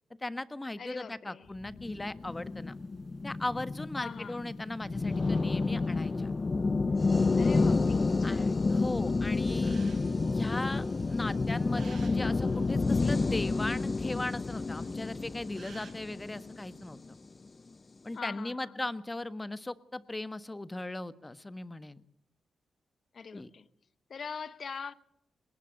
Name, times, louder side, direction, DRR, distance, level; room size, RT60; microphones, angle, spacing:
voice 1, 0.2-2.8 3.2-6.3 8.2-9.8 10.3-17.2 18.0-22.0 23.3-23.5, left 2 dB, 20° left, 1.4 m, -38 dB
voice 2, 0.8-1.5 4.0-4.4 7.4-8.5 18.1-18.9 23.1-23.7 24.1-24.9, left 6 dB, 60° left, 1.2 m, -43 dB
sound 1, 1.6-17.1, left 3 dB, 40° left, 0.7 m, -30 dB
sound 2, 2.2-15.9, right 5 dB, 70° right, 6.4 m, -59 dB
20.5 x 19.5 x 6.6 m
cardioid pair, 55°, 0 cm